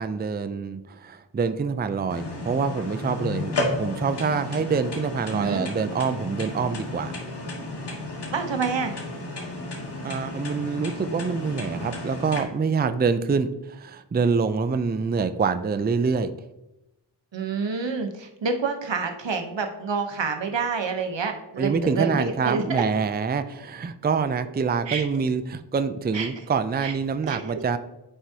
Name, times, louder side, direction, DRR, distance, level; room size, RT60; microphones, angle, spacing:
voice 1, 0.0-7.1 10.0-16.3 21.6-27.8, right 5 dB, 25° right, 11 dB, 0.4 m, -26 dB
sound 1, 2.1-12.4, left 2 dB, 65° left, 1.7 m, -33 dB
voice 2, 5.3-5.6 8.3-8.9 17.3-22.8 24.9-25.0 26.1-26.3 26.8-26.9 27.3-27.6, right 5 dB, 80° right, 5 dB, 1.0 m, -28 dB
9.9 x 4.6 x 2.8 m, 0.93 s
wide cardioid pair, 55°, 43 cm